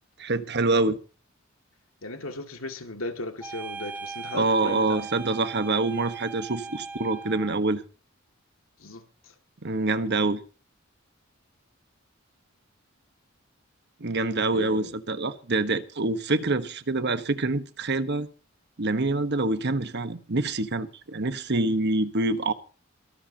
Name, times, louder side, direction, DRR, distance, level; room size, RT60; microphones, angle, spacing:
voice 1, 0.2-1.0 4.3-7.8 9.6-10.4 14.0-18.3 18.8-22.5, right 2 dB, 55° right, 1.2 m, -26 dB
voice 2, 2.0-5.1 8.8-9.0 14.5-15.0, left 2 dB, 80° left, 2.2 m, -36 dB
sound 1, 3.4-7.6, right 5 dB, 10° right, 2.1 m, -39 dB
23.5 x 13.0 x 2.9 m
head